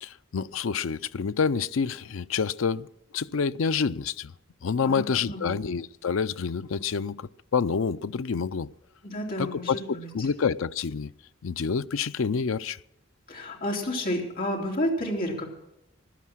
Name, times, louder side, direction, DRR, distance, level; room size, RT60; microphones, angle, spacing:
voice 1, 0.0-2.9 3.1-4.3 4.6-8.7 9.4-9.8 10.1-11.1 11.4-12.8, left 6 dB, 90° left, 0.5 m, -28 dB
voice 2, 4.8-5.6 9.0-10.3 13.3-15.5, left 1 dB, 45° left, 3.7 m, -31 dB
16.5 x 12.0 x 6.1 m
head